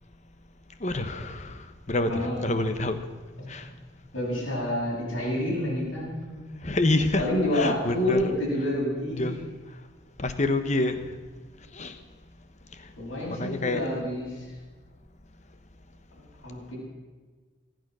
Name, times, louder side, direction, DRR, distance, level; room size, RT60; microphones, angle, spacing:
voice 1, 0.8-1.6 1.9-3.0 3.5-3.7 6.6-7.2 7.5-8.2 9.1-9.4 10.2-11.0 11.7-11.9 13.3-13.8 14.3-14.4, left 2 dB, 35° left, 9 dB, 1.1 m, -27 dB
voice 2, 2.0-2.4 3.4-3.5 4.1-6.4 7.2-9.4 13.0-14.5 16.1-16.8, left 1 dB, 80° left, -6 dB, 7.3 m, -28 dB
25.0 x 9.3 x 6.2 m, 1.4 s
head